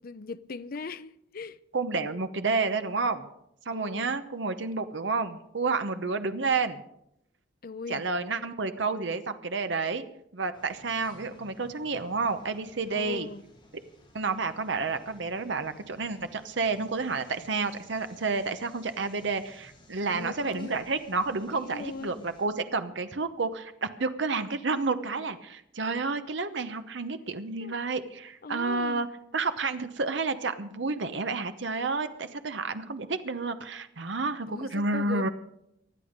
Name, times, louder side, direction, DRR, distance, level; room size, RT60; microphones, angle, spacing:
voice 1, 0.0-1.6 3.7-4.2 7.6-8.0 12.9-13.4 20.0-20.9 21.5-22.3 27.6-27.8 28.4-29.1 34.5-35.3, left 4 dB, 50° left, 0.6 m, -40 dB
voice 2, 1.7-3.3 3.7-6.8 7.9-10.0 10.3-13.3 14.1-29.1 29.3-35.3, right 4 dB, 75° right, 0.9 m, -30 dB
sound 1, 10.5-22.5, equal, 25° left, 5.7 m, -57 dB
19.5 x 12.0 x 5.2 m
head